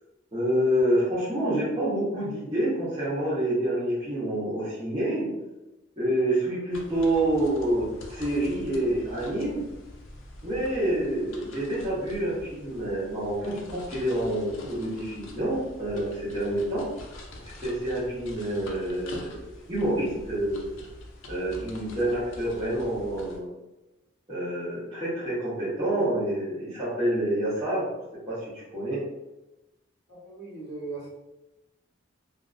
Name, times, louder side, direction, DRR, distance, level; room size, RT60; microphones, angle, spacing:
voice 1, 0.3-5.3 6.0-9.6 10.4-16.8 17.6-19.4 19.7-20.7 21.3-23.5 24.3-27.9 28.3-29.0, right 1 dB, 30° right, -11 dB, 0.8 m, -27 dB
sound 1, 6.7-23.4, left 1 dB, 80° left, 0.5 m, -45 dB
voice 2, 30.1-31.1, right 3 dB, 55° right, -8 dB, 1.1 m, -38 dB
2.6 x 2.3 x 2.3 m, 0.99 s
head